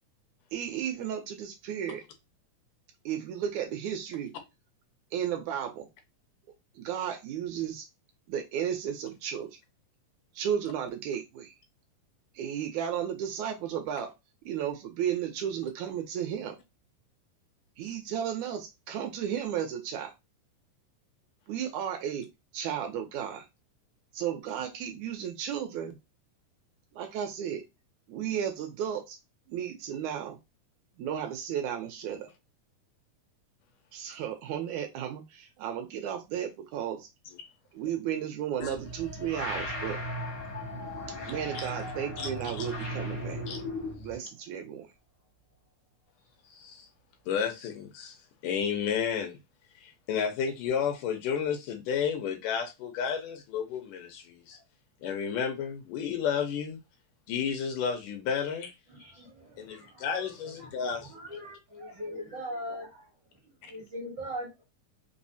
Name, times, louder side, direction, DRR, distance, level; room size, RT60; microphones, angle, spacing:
voice 1, 0.5-2.0 3.1-4.3 5.1-5.9 6.8-7.9 8.3-9.5 10.3-11.5 12.4-14.1 14.5-16.6 17.8-20.1 21.5-22.3 22.5-23.5 24.1-26.0 26.9-27.6 28.1-29.2 29.5-30.4 31.0-32.3 33.9-37.1 37.7-40.0 41.3-43.4 44.0-44.9, right 9 dB, 75° right, 1.9 m, -34 dB
sound 1, 38.6-44.1, equal, 60° left, 0.6 m, -37 dB
voice 2, 42.2-42.7 43.5-43.6 46.5-46.9 47.3-48.2 48.4-49.4 49.8-54.6 55.0-56.8 57.3-58.7 59.6-61.4, left 7 dB, 80° left, 2.3 m, -32 dB
voice 3, 59.1-60.0 60.6-60.7 61.1-62.8 63.9-64.5, equal, 55° right, 1.2 m, -39 dB
5.3 x 2.0 x 2.6 m
omnidirectional pair, 3.6 m